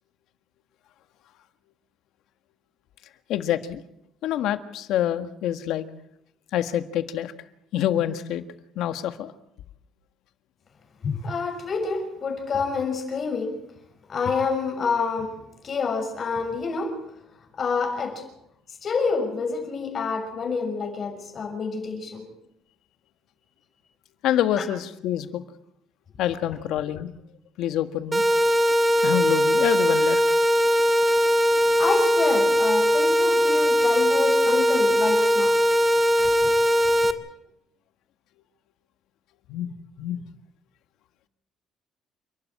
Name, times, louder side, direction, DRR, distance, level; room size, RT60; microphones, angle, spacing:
voice 1, 3.3-3.8 4.2-5.8 6.5-7.3 7.7-8.4 8.7-9.3 24.2-25.4 26.2-27.1 27.6-28.2 29.0-30.2 39.5-39.7 40.0-40.2, left 11 dB, 75° left, 1.7 m, -26 dB
voice 2, 11.0-13.6 14.1-17.0 17.6-18.2 18.8-22.3 24.6-24.7 31.8-35.6, left 4 dB, 40° left, 6.6 m, -28 dB
sound 1, 28.1-37.1, equal, 15° right, 1.5 m, -20 dB
29.0 x 12.0 x 8.9 m
cardioid pair, 130°, 0 cm